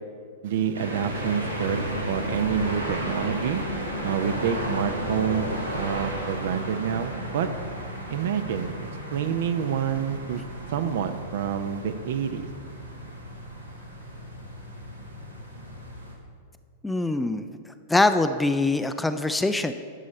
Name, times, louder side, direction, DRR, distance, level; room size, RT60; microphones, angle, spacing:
voice 1, 0.4-3.6 4.0-7.5 8.1-8.7 9.1-10.4 10.7-12.5, right 8 dB, 55° right, 10 dB, 0.6 m, -28 dB
sound 1, 0.7-16.1, right 1 dB, 85° right, 1.5 m, -33 dB
voice 2, 16.8-17.5 17.9-19.7, left 2 dB, 5° left, 9 dB, 0.4 m, -23 dB
11.0 x 7.2 x 4.3 m, 2.1 s
figure-of-eight pair, 95°, 0 cm